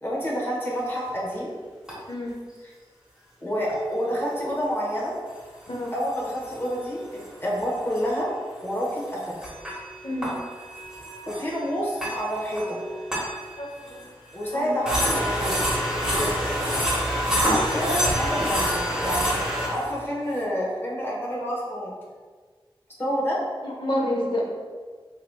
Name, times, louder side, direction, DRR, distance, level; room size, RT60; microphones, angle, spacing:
voice 1, 0.0-1.5 3.4-5.1 5.9-8.3 8.6-9.4 11.3-12.8 14.3-15.6 16.0-16.3 17.7-19.4 19.7-21.9 23.0-23.4, equal, 25° left, -5 dB, 1.2 m, -28 dB
sound 1, 1.1-1.2 1.9-2.0 3.7-3.8 5.7-6.9 7.2-7.3 7.6-7.7 8.0-8.1 8.9-14.0 14.4-14.5 14.9-19.9, equal, 5° right, 1.5 m, -27 dB
voice 2, 10.0-10.4 13.6-14.0 14.5-14.8 23.6-24.4, left 1 dB, 65° left, -3 dB, 0.9 m, -29 dB
4.7 x 2.9 x 2.3 m, 1.5 s
wide cardioid pair, 50°, 10 cm